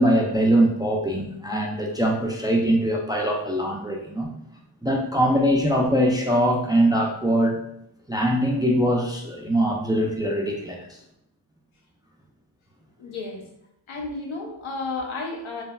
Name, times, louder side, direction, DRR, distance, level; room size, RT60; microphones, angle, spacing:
voice 1, 0.0-4.3 4.8-7.6 8.1-10.8, equal, 10° right, 1 dB, 0.3 m, -22 dB
voice 2, 13.0-13.4 13.9-15.6, left 3 dB, 85° left, 1 dB, 0.7 m, -32 dB
3.1 x 2.3 x 2.2 m, 0.76 s
cardioid pair, 45°, 47 cm